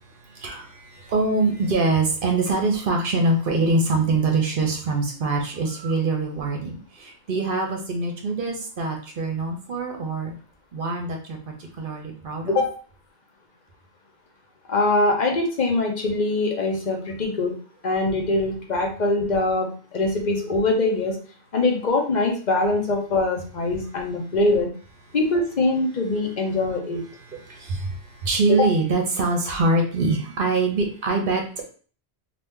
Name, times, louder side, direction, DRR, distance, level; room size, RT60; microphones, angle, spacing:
voice 1, 0.3-10.3 10.7-12.6 27.1-31.7, right 3 dB, 55° right, 2 dB, 0.9 m, -24 dB
voice 2, 14.7-17.5 17.8-21.2 21.5-24.7 25.1-27.0 28.5-28.7, left 2 dB, 45° left, 1 dB, 0.8 m, -23 dB
2.9 x 2.6 x 3.5 m, 0.40 s
omnidirectional pair, 1.1 m